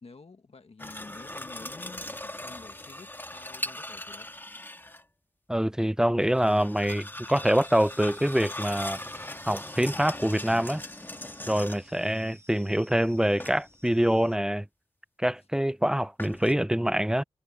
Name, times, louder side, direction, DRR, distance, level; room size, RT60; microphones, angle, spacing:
voice 1, 0.0-4.3, left 4 dB, 55° left, 1.5 m, -49 dB
sound 1, 0.8-5.0 6.2-12.0 13.4-14.0 16.2-16.5, left 1 dB, 15° left, 1.8 m, -40 dB
voice 2, 5.5-9.0 9.5-10.8 11.5-14.7 15.2-17.2, equal, 5° right, 0.5 m, -25 dB
sound 2, 7.6-14.4, right 1 dB, 20° right, 1.2 m, -55 dB
wide cardioid pair, 80°, 12 cm